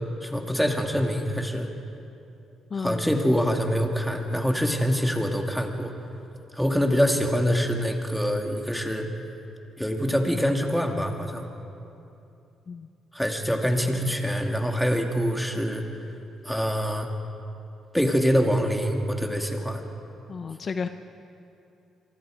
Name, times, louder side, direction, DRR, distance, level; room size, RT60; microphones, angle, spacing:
voice 1, 0.2-1.7 2.8-5.9 6.5-9.1 9.8-11.5 13.1-15.9 16.4-17.1 17.9-19.8, equal, ahead, 3 dB, 2.6 m, -25 dB
voice 2, 2.7-3.1 12.7-12.9 20.3-20.9, left 5 dB, 45° left, 8 dB, 0.8 m, -32 dB
26.5 x 23.5 x 5.1 m, 2.8 s
cardioid pair, 90°, 0 cm